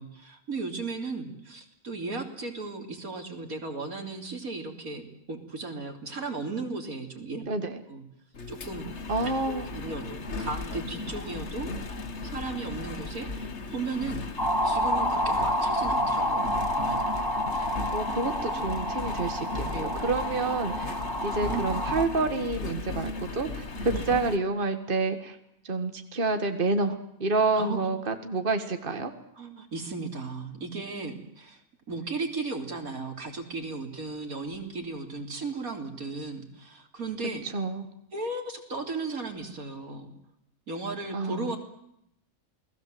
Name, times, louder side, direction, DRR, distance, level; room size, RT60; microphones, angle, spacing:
voice 1, 0.0-7.5 7.9-8.0 8.5-8.9 9.2-14.2 14.6-17.0 19.7-19.9 21.5-21.6 23.9-24.1 27.6-27.9 29.4-31.6 31.9-37.5 38.1-40.1 40.7-41.6, right 3 dB, 85° right, 4 dB, 3.8 m, -36 dB
voice 2, 7.5-7.8 9.1-9.7 17.6-20.9 21.2-25.4 25.7-29.1 37.5-37.9 41.1-41.5, right 3 dB, 40° right, 7 dB, 2.0 m, -28 dB
Engine, 8.3-24.4, left 3 dB, 50° left, 2.0 m, -36 dB
sound 1, 14.4-22.0, equal, 15° left, 3.2 m, -29 dB
29.0 x 19.5 x 7.9 m, 0.78 s
omnidirectional pair, 1.5 m